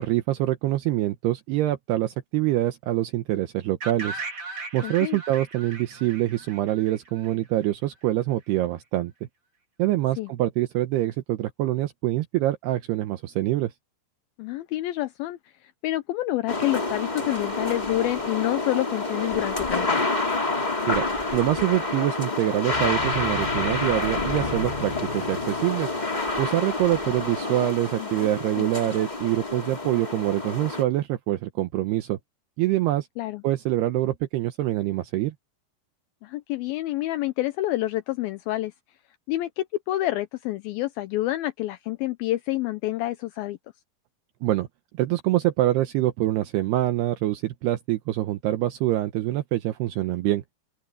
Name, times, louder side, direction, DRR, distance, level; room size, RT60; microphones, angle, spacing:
voice 1, 0.0-4.2 4.7-9.1 9.8-13.7 20.9-21.0 21.3-25.9 26.4-32.2 32.6-33.1 33.4-35.3 44.4-44.7 45.0-50.4, right 15 dB, 75° right, 2.7 m, -25 dB
sound 1, 3.8-7.7, right 3 dB, 30° right, 3.5 m, -37 dB
voice 2, 4.8-5.2 10.2-10.3 14.4-20.2 28.0-28.7 33.2-33.4 36.2-38.7 39.3-43.6, left 16 dB, 85° left, 2.1 m, -28 dB
sound 2, 16.5-30.8, left 3 dB, 15° left, 2.1 m, -28 dB
sound 3, 22.7-26.3, left 4 dB, 60° left, 8.1 m, -38 dB
open air
omnidirectional pair, 5.2 m